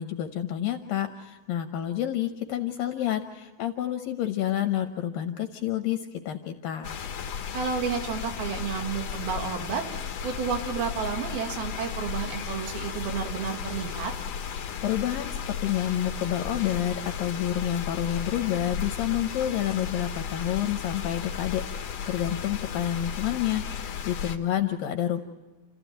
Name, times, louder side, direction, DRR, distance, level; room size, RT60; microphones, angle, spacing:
voice 1, 0.0-6.9 14.8-25.2, left 11 dB, 75° left, 6 dB, 2.5 m, -29 dB
sound 1, 6.8-24.4, left 7 dB, 60° left, 2.0 m, -35 dB
voice 2, 7.5-9.8 10.2-14.1, right 6 dB, 80° right, 4 dB, 3.8 m, -31 dB
29.0 x 14.5 x 9.2 m, 1.3 s
omnidirectional pair, 4.4 m